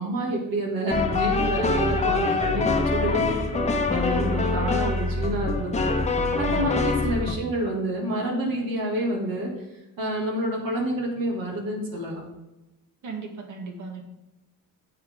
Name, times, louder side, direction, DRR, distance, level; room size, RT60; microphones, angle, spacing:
voice 1, 0.0-5.9 6.4-9.5 10.0-12.2, right 1 dB, 75° right, -1 dB, 2.9 m, -28 dB
sound 1, 0.9-7.3, left 3 dB, 20° left, 0.9 m, -24 dB
voice 2, 6.5-6.8 13.0-14.0, right 4 dB, 60° right, 2 dB, 2.1 m, -37 dB
9.3 x 8.3 x 3.9 m, 0.98 s
wide cardioid pair, 155°, 34 cm